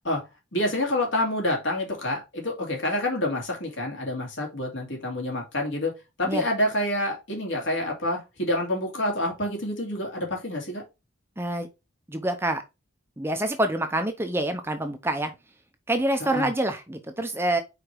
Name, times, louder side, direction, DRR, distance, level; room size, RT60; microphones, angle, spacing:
voice 1, 0.5-5.9 6.2-10.8 16.2-16.5, left 1 dB, 65° left, 2.6 m, -27 dB
voice 2, 11.4-11.7 12.1-12.6 13.2-15.3 15.9-17.6, right 1 dB, 10° right, 0.6 m, -26 dB
4.9 x 4.7 x 4.5 m
head